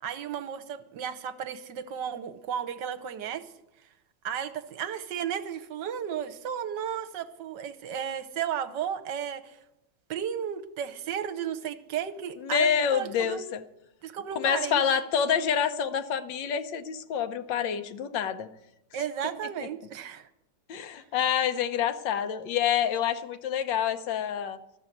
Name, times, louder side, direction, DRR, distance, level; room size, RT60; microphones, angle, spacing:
voice 1, 0.0-3.5 4.2-9.6 10.1-13.5 14.0-14.8 18.9-20.3, right 8 dB, 75° right, 11 dB, 1.4 m, -34 dB
voice 2, 12.4-13.6 14.4-18.5 20.7-24.6, left 8 dB, 75° left, 9 dB, 1.5 m, -27 dB
13.0 x 7.0 x 9.1 m, 0.86 s
omnidirectional pair, 2.0 m